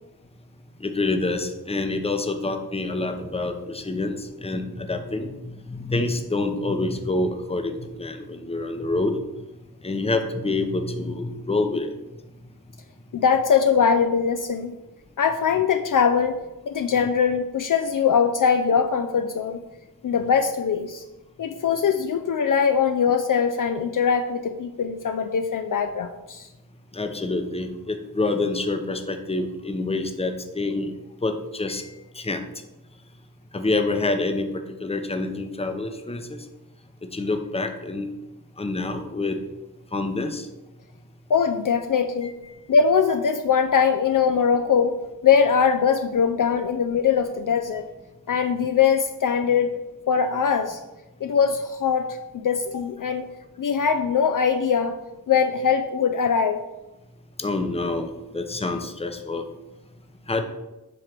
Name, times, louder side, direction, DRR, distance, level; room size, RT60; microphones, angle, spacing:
voice 1, 0.8-9.2 9.8-11.9 26.9-30.9 31.2-32.4 33.5-36.4 37.0-38.1 38.6-39.4 39.9-40.5 57.4-59.4 60.3-60.4, left 2 dB, 15° left, 6 dB, 0.7 m, -27 dB
voice 2, 13.1-14.7 15.2-16.4 16.7-19.6 20.0-21.0 21.4-26.5 41.3-42.3 42.7-45.0 45.2-47.9 48.3-49.7 50.1-50.8 51.2-52.1 52.3-53.2 53.6-54.9 55.3-56.6, left 6 dB, 55° left, 6 dB, 0.5 m, -21 dB
7.8 x 3.2 x 5.8 m, 1.0 s
wide cardioid pair, 85°, 39 cm